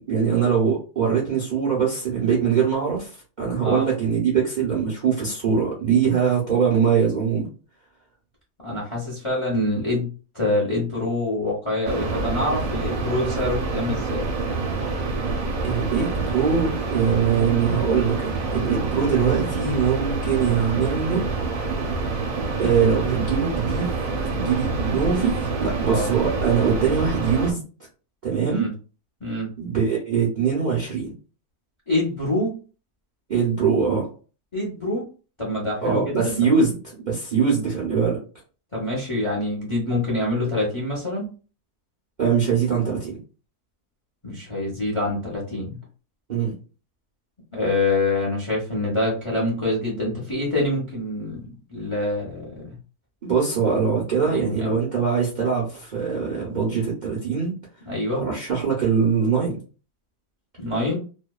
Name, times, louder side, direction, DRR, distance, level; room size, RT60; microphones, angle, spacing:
voice 1, 0.1-7.5 15.6-21.3 22.6-23.9 24.3-27.6 28.2-28.7 29.6-31.1 33.3-34.1 35.8-38.2 42.2-43.2 46.3-46.5 53.2-57.5 58.1-59.6, right 6 dB, 50° right, -4 dB, 0.6 m, -22 dB
voice 2, 8.6-10.1 10.3-14.3 25.9-26.1 28.5-28.7 29.2-29.5 31.9-32.6 34.5-35.0 35.4-36.5 38.7-41.3 44.2-45.8 47.5-52.7 54.2-54.7 57.9-58.2 60.6-61.0, left 2 dB, 30° left, -4 dB, 0.5 m, -25 dB
sound 1, 11.8-27.5, right 3 dB, 70° right, 1.1 m, -27 dB
2.7 x 2.2 x 2.2 m, 0.36 s
omnidirectional pair, 1.6 m